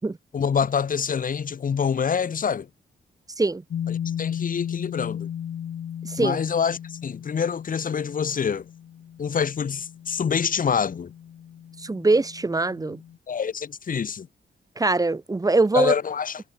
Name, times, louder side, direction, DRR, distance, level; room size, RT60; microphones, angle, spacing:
voice 1, 0.3-2.7 3.9-5.3 6.2-8.7 9.2-11.1 13.3-14.3 15.7-16.4, left 7 dB, 55° left, 4.3 m, -26 dB
sound 1, 3.7-13.2, left 9 dB, 85° left, 6.4 m, -35 dB
voice 2, 6.0-6.4 11.8-13.0 14.8-15.9, right 3 dB, 20° right, 5.6 m, -22 dB
wide cardioid pair, 135°, 17 cm